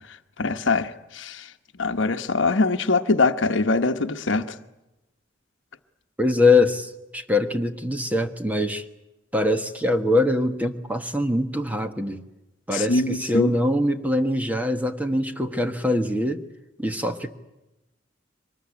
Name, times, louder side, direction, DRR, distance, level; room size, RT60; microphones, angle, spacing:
voice 1, 0.4-1.5 1.8-4.6 12.7-13.5, left 3 dB, 70° left, 8 dB, 1.1 m, -23 dB
voice 2, 6.2-8.8 9.3-12.2 12.7-16.4 16.8-17.3, left 2 dB, 10° right, 7 dB, 1.4 m, -23 dB
24.0 x 20.0 x 9.7 m, 0.97 s
head